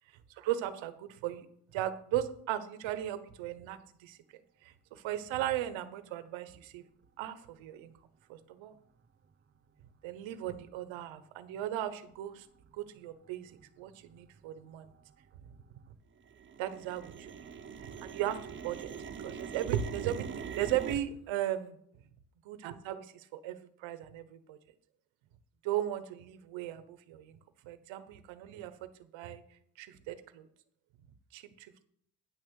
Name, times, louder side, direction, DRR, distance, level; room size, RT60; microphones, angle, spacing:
voice 1, 0.3-4.2 4.6-6.9 7.2-7.9 8.3-8.7 10.0-12.5 12.7-14.9 16.6-17.4 17.8-18.9 19.2-21.8 22.5-24.6 25.6-27.4 27.6-29.4 29.8-30.5 31.3-31.8, right 12 dB, 85° right, 12 dB, 1.1 m, -37 dB
sound 1, 10.1-10.2 10.9-11.0 11.6-11.9 12.4-12.5 12.7-13.3 13.5-15.9 16.2-21.0, right 6 dB, 25° right, 0.7 m, -44 dB
9.7 x 6.5 x 6.3 m, 0.68 s
cardioid pair, 125°, 45 cm